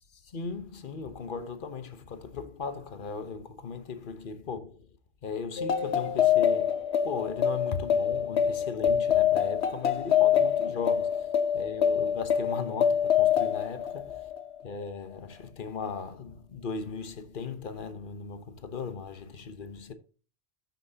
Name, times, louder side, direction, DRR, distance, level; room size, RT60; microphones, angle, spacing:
voice 1, 0.1-4.9 5.2-14.3 14.6-19.9, left 5 dB, 55° left, 1.2 m, -37 dB
sound 1, 5.6-14.6, left 8 dB, 90° left, 1.2 m, -25 dB
14.0 x 5.9 x 2.8 m
omnidirectional pair, 1.1 m